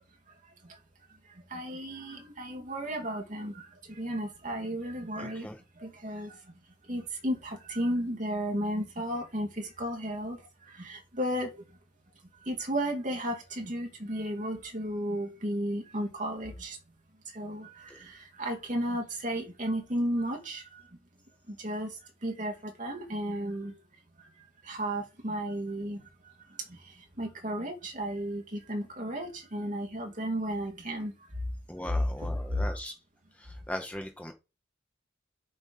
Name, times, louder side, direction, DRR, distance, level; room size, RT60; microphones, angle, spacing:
voice 1, 1.5-5.5 5.8-6.4 6.9-10.4 10.7-11.5 12.4-16.8 17.3-20.8 21.5-23.7 24.6-26.1 26.7-31.1 31.9-32.6, equal, 40° right, 2.2 m, -33 dB
voice 2, 5.2-5.6 17.9-18.0 31.7-32.9 33.3-34.3, left 1 dB, 5° left, 0.8 m, -39 dB
7.5 x 4.4 x 5.5 m
head